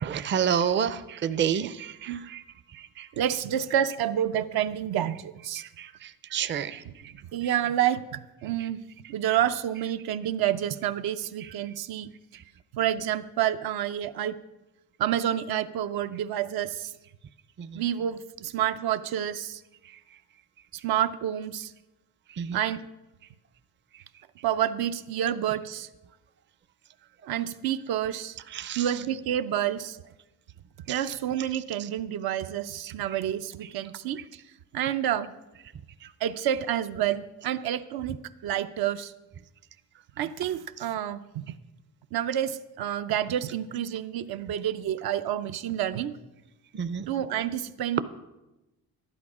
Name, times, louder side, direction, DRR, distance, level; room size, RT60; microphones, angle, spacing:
voice 1, 0.0-2.4 2.7-3.1 5.6-6.8 8.6-8.7 11.4-11.5 12.3-12.4 17.6-17.8 22.4-22.6 28.5-28.9 30.9-31.0 31.8-31.9 46.7-47.1, right 8 dB, 30° right, 13 dB, 0.5 m, -30 dB
voice 2, 3.2-5.6 6.9-7.0 7.3-8.8 9.1-12.1 12.7-14.3 15.0-16.9 17.7-19.6 20.8-21.7 22.5-22.8 24.4-25.9 27.3-28.4 28.8-30.0 30.9-34.2 34.7-35.3 36.2-38.2 38.4-39.1 40.2-41.4 42.1-46.1 47.1-48.0, right 11 dB, 80° right, 9 dB, 0.6 m, -28 dB
12.0 x 11.0 x 4.9 m, 1.0 s
cardioid pair, 110°, 37 cm